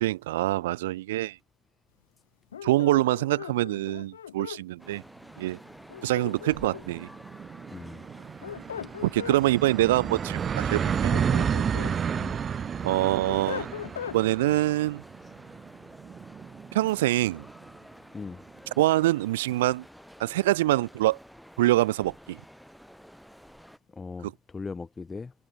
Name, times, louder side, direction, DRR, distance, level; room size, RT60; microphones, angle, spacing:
voice 1, 0.0-1.4 2.6-5.0 5.4-5.6 6.0-7.1 9.0-11.2 12.8-13.7 14.1-15.0 16.7-17.5 18.8-19.8 20.2-21.2 21.6-22.4 24.2-24.3, right 16 dB, 70° right, 0.3 m, -25 dB
sound 1, 2.5-4.6 5.9-7.0 8.2-9.4 10.8-12.0 12.4-14.2, left 9 dB, 80° left, 1.0 m, -39 dB
sound 2, 4.8-23.8, equal, ahead, 5.1 m, -51 dB
sound 3, 5.4-5.5 5.8-5.9 6.1-17.6, right 7 dB, 35° right, 1.3 m, -31 dB
voice 2, 7.7-8.0 12.1-12.4 18.1-18.4 23.9-25.3, left 4 dB, 20° left, 1.6 m, -38 dB
figure-of-eight pair, 70°, 0 cm